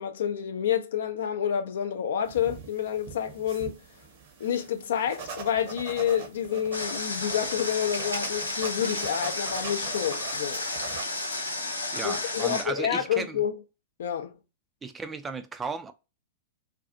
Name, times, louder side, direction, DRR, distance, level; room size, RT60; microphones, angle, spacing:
voice 1, 0.0-3.8 4.4-10.6 12.0-13.5 14.0-14.4, left 9 dB, 60° left, 0.4 m, -29 dB
sound 1, 2.2-11.0, right 5 dB, 50° right, 0.7 m, -43 dB
Water, 6.7-12.6, left 2 dB, 85° left, 0.8 m, -32 dB
sound 2, 7.1-7.2 7.6-9.9 10.3-11.7, right 1 dB, 85° right, 0.8 m, -42 dB
voice 2, 11.9-13.4 14.8-15.9, right 4 dB, 15° right, 0.3 m, -35 dB
2.5 x 2.3 x 2.5 m
figure-of-eight pair, 100°, 0 cm